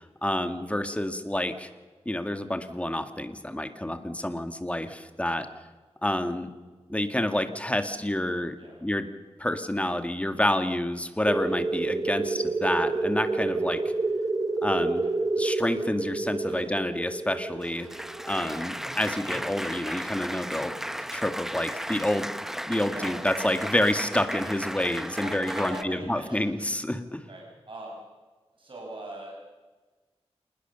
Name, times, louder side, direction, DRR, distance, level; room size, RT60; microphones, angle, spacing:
voice 1, 0.0-1.7 2.1-5.5 6.0-6.5 6.9-9.1 9.4-13.8 14.6-15.0 15.4-17.9 18.3-20.7 21.1-22.3 22.6-27.2, left 1 dB, 10° left, 8 dB, 1.8 m, -28 dB
sound 1, 11.3-19.6, right 3 dB, 35° right, 2.6 m, -29 dB
Applause, 17.4-25.8, equal, 5° right, 0.7 m, -35 dB
voice 2, 25.2-26.5 27.3-28.0 28.5-29.4, right 1 dB, 50° right, -2 dB, 5.6 m, -42 dB
27.0 x 20.0 x 6.9 m, 1.3 s
wide cardioid pair, 85°, 11 cm